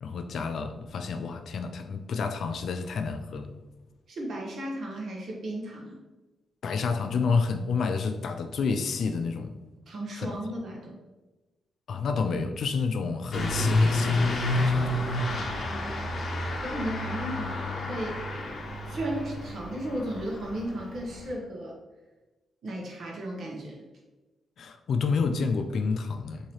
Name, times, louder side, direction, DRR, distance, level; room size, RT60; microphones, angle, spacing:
voice 1, 0.0-3.5 6.6-9.6 10.2-10.3 11.9-15.1 24.6-26.5, left 5 dB, 65° left, 0.3 m, -29 dB
voice 2, 4.1-6.0 9.9-11.0 15.5-15.9 16.6-18.2 18.9-21.8 22.6-23.8, right 1 dB, 65° right, 0.9 m, -35 dB
Truck / Accelerating revving vroom, 13.3-21.3, left 2 dB, 45° left, 0.7 m, -29 dB
4.2 x 2.8 x 3.0 m
cardioid pair, 115°, 0 cm